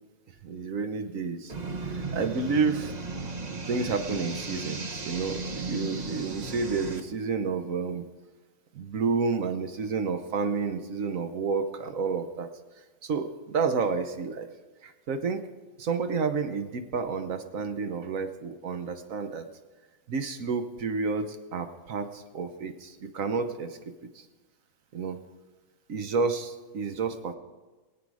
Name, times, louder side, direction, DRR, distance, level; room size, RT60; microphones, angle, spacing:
voice 1, 0.4-1.5 2.1-2.9 3.7-8.1 8.7-12.5 13.0-14.5 14.8-15.4 15.8-19.5 20.1-23.8 24.1-24.2 24.9-25.2 25.9-27.3, right 4 dB, 65° right, 8 dB, 1.3 m, -30 dB
sound 1, 1.5-7.0, right 3 dB, 30° right, 1.0 m, -35 dB
23.5 x 8.4 x 4.8 m, 1.2 s
omnidirectional pair, 1.6 m